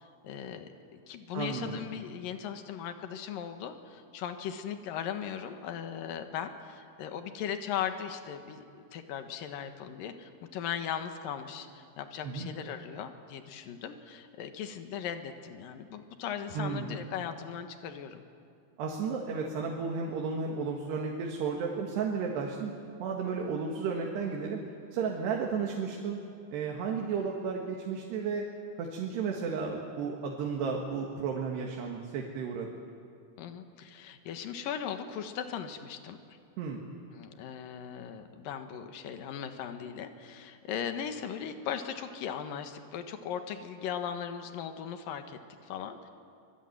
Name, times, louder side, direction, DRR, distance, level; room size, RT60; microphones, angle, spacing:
voice 1, 0.2-8.6 8.9-18.2 33.4-36.2 37.1-46.1, left 8 dB, 65° left, 7 dB, 2.9 m, -38 dB
voice 2, 1.3-1.9 12.2-12.5 16.5-16.9 18.8-22.7 23.0-24.6 24.9-26.2 26.5-28.4 28.8-32.8 36.6-36.8, right 5 dB, 85° right, 0 dB, 4.0 m, -33 dB
25.0 x 21.0 x 9.4 m, 2.5 s
omnidirectional pair, 4.7 m